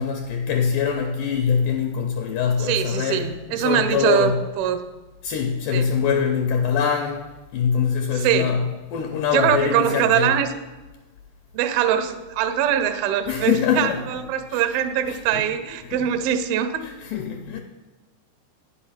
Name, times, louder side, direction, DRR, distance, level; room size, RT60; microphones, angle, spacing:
voice 1, 0.0-3.3 3.5-4.3 5.2-7.3 7.5-8.6 8.9-10.4 13.3-14.0 14.5-14.6 15.1-15.4 15.8-16.1 16.8-17.6, left 7 dB, 85° left, 1.9 m, -23 dB
voice 2, 2.6-4.8 5.7-5.9 8.1-8.5 9.3-10.5 11.5-16.8, right 9 dB, 80° right, 2.3 m, -22 dB
10.0 x 5.8 x 5.7 m
omnidirectional pair, 4.7 m